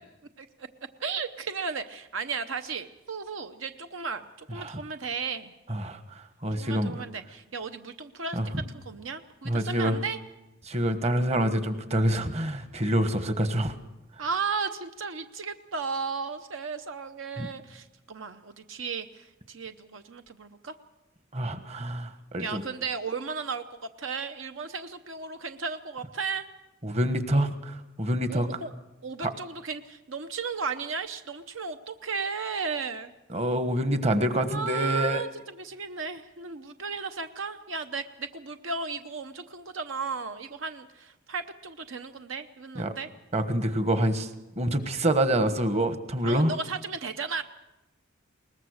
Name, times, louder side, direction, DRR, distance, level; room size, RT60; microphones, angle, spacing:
voice 1, 1.0-5.5 6.6-8.4 8.7-10.2 14.2-20.7 22.4-26.5 28.3-28.7 29.0-33.1 34.5-43.1 46.2-47.4, right 5 dB, 70° right, 8 dB, 0.8 m, -35 dB
voice 2, 5.7-7.0 8.3-8.5 9.4-10.0 10.7-13.7 17.4-17.5 21.3-22.6 26.8-28.5 29.2-29.3 33.3-35.2 42.8-42.9 43.3-44.3 44.6-46.5, right 1 dB, 30° right, 9 dB, 1.4 m, -26 dB
21.5 x 19.5 x 6.5 m, 0.98 s
head